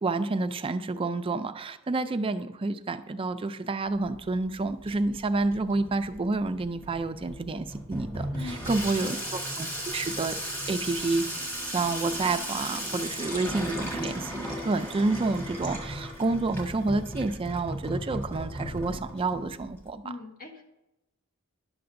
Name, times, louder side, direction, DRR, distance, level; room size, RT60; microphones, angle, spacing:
voice 1, 0.0-8.3 8.7-10.4 10.7-11.3 11.7-20.0, right 3 dB, 25° right, 9 dB, 0.4 m, -29 dB
Water tap faucet / Sink (filling or washing), 3.9-19.9, equal, 10° left, 1.5 m, -36 dB
voice 2, 8.3-9.2 20.0-20.6, left 3 dB, 40° left, 3 dB, 1.0 m, -42 dB
11.0 x 6.8 x 2.6 m, 0.94 s
head